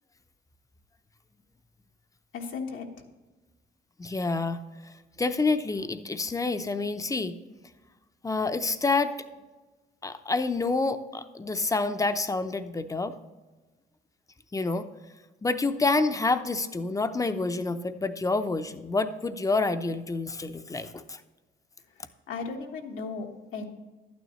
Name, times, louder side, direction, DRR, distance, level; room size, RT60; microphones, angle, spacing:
voice 1, 2.3-3.0 22.0-23.6, left 4 dB, 85° left, 1 dB, 1.4 m, -36 dB
voice 2, 4.0-4.6 5.2-7.3 8.2-9.1 10.0-13.1 14.5-14.9 15.4-21.2, left 3 dB, 15° left, 10 dB, 0.6 m, -28 dB
11.5 x 9.3 x 3.1 m, 1.2 s
cardioid pair, 90°, 20 cm